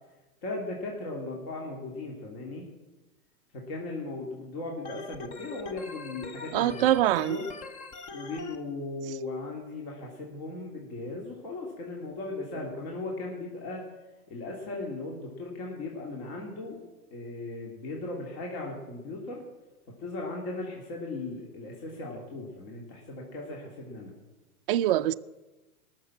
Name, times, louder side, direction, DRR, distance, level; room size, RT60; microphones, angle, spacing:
voice 1, 0.4-2.7 3.5-6.9 7.2-7.5 8.1-13.9 14.3-16.8 17.1-19.4 20.0-24.1, left 2 dB, 45° left, 2.9 m, -37 dB
Organ, 4.8-8.6, left 3 dB, 20° left, 0.7 m, -42 dB
voice 2, 6.5-7.4 24.7-25.1, right 13 dB, 40° right, 0.4 m, -23 dB
19.5 x 6.8 x 7.4 m
hypercardioid pair, 130°, 44 cm